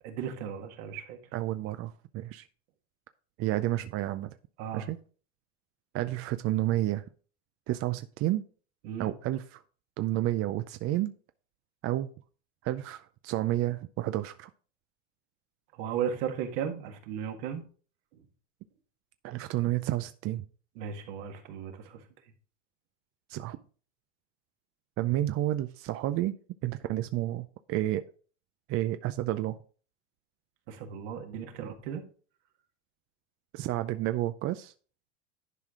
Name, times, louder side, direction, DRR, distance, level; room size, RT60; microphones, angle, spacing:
voice 1, 0.0-1.2 4.6-4.9 8.8-9.1 15.7-17.6 18.1-18.2 20.8-22.0 30.7-32.0, right 8 dB, 70° right, 4 dB, 1.7 m, -36 dB
voice 2, 1.3-2.5 3.4-4.3 4.7-5.0 5.9-7.0 7.7-8.4 9.0-9.6 10.0-11.1 11.8-12.1 12.6-14.5 19.2-20.4 23.3-23.6 25.0-26.4 26.6-28.0 28.7-29.6 33.5-34.7, right 15 dB, 40° right, 10 dB, 0.5 m, -30 dB
11.0 x 4.8 x 3.6 m, 0.41 s
supercardioid pair, 105°, 37 cm